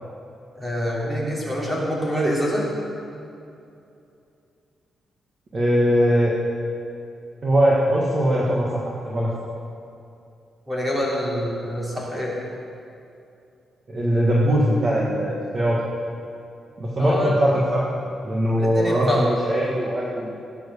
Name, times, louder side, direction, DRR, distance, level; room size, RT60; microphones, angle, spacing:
voice 1, 0.5-2.6 10.7-12.3 17.0-17.4 18.6-19.3, equal, 15° right, -4 dB, 3.3 m, -25 dB
voice 2, 5.5-6.3 7.4-8.7 9.0-9.3 13.9-15.8 16.8-17.9 18.2-20.4, equal, 30° right, -4 dB, 1.6 m, -21 dB
17.0 x 9.2 x 6.9 m, 2.6 s
wide cardioid pair, 170°, 0 cm